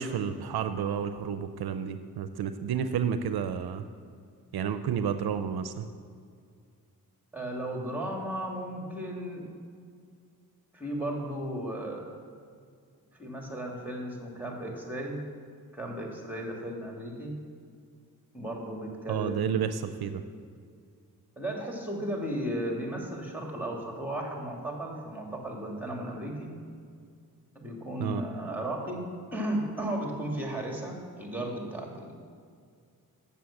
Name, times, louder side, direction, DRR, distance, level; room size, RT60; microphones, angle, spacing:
voice 1, 0.0-3.9 4.5-5.9 19.1-20.2 28.0-28.2, right 8 dB, 75° right, 10 dB, 0.5 m, -31 dB
voice 2, 7.3-9.5 10.7-12.1 13.2-15.2 15.7-17.4 18.3-19.6 21.4-26.5 27.5-32.1, right 1 dB, 5° right, 0 dB, 2.4 m, -35 dB
7.7 x 7.2 x 7.1 m, 2.2 s
cardioid pair, 55°, 38 cm